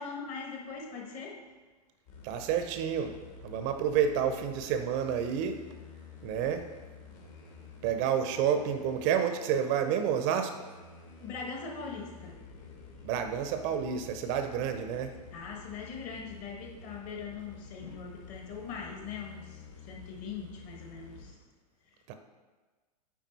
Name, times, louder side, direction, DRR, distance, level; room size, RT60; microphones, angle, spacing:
voice 1, 0.0-1.4 11.2-13.1 15.3-21.4, left 5 dB, 35° left, 1 dB, 1.3 m, -41 dB
sound 1, 2.1-21.3, left 4 dB, 55° left, 1.9 m, -50 dB
voice 2, 2.2-5.6 6.2-6.7 7.8-10.6 13.0-15.2 22.1-22.2, right 8 dB, 35° right, 7 dB, 0.6 m, -29 dB
9.2 x 3.7 x 4.1 m, 1.3 s
figure-of-eight pair, 100°, 21 cm